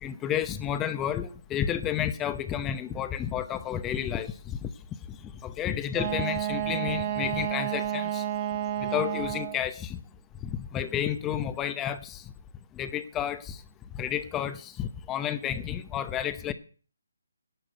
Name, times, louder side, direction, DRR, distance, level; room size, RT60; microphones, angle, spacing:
voice 1, 0.0-4.7 5.1-8.3 8.8-10.0 10.4-12.3 12.7-13.6 13.9-16.5, left 10 dB, 15° left, 11 dB, 0.8 m, -31 dB
Wind instrument woodwind instrument, 5.9-9.7, right 11 dB, 30° right, 1.3 m, -30 dB
11.5 x 8.4 x 7.9 m, 0.40 s
figure-of-eight pair, 150°, 0 cm